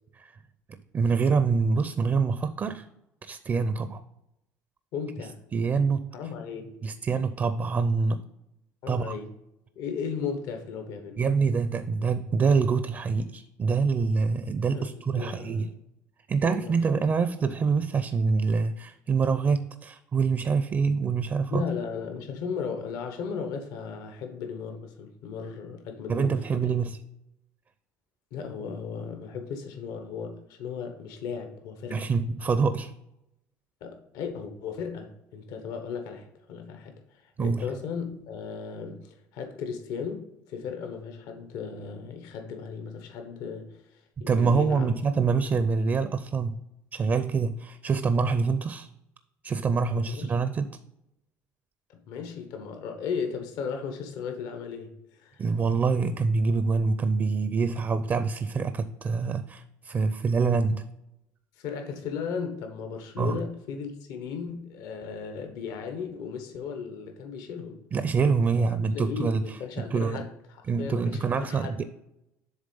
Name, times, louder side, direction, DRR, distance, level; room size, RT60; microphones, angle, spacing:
voice 1, 0.9-2.9 3.2-4.0 5.5-6.1 6.8-8.2 8.9-9.1 11.2-15.7 16.3-21.6 26.1-27.0 31.9-32.9 37.4-37.7 44.2-46.6 46.9-48.9 49.4-50.7 55.4-60.9 63.2-63.4 67.9-69.6 69.9-70.2 70.7-71.8, right 5 dB, 35° right, 0.5 m, -25 dB
voice 2, 4.9-5.4 6.1-6.8 8.8-9.3 9.8-11.2 14.7-15.7 16.4-16.8 21.5-26.7 28.3-32.1 33.8-43.8 44.2-44.9 50.0-50.3 51.9-55.4 61.6-67.8 68.7-71.8, left 6 dB, 75° left, 1.1 m, -36 dB
7.2 x 3.6 x 5.3 m
cardioid pair, 105°, 7 cm